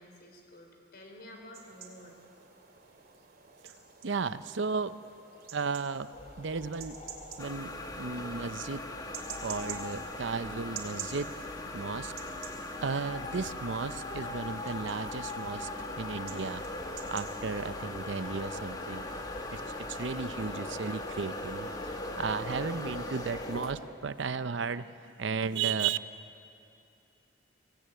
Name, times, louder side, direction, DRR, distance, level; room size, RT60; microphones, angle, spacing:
voice 1, 0.0-2.2, left 1 dB, 55° left, 2 dB, 4.3 m, -50 dB
sound 1, 1.5-17.8, right 7 dB, 50° right, 2.6 m, -49 dB
voice 2, 4.0-5.0 5.5-7.0 7.4-7.7 8.0-8.9 9.4-11.4 11.7-12.1 12.8-15.7 16.0-16.6 17.1-19.1 19.5-26.0, right 5 dB, 65° right, 13 dB, 0.6 m, -34 dB
sound 2, 6.1-23.8, left 2 dB, 35° left, 2.2 m, -43 dB
sound 3, 7.4-23.7, left 2 dB, 20° left, 1.4 m, -41 dB
24.0 x 17.5 x 9.2 m, 2.6 s
head